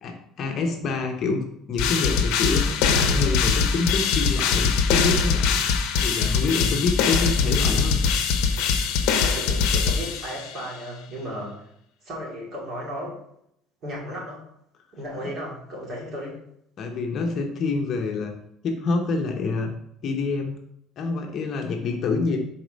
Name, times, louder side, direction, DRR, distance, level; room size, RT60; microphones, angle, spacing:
voice 1, 0.0-5.7 6.0-8.0 15.2-15.3 16.8-18.3 18.6-19.7 20.0-20.6 21.0-22.4, left 4 dB, 40° left, 3 dB, 0.8 m, -27 dB
sound 1, 1.8-10.6, left 5 dB, 85° left, 0.6 m, -22 dB
voice 2, 9.2-11.6 12.0-13.2 13.8-14.5 14.9-16.5, equal, 40° right, -4 dB, 2.3 m, -35 dB
4.7 x 4.2 x 5.2 m, 0.75 s
cardioid pair, 155°, 0 cm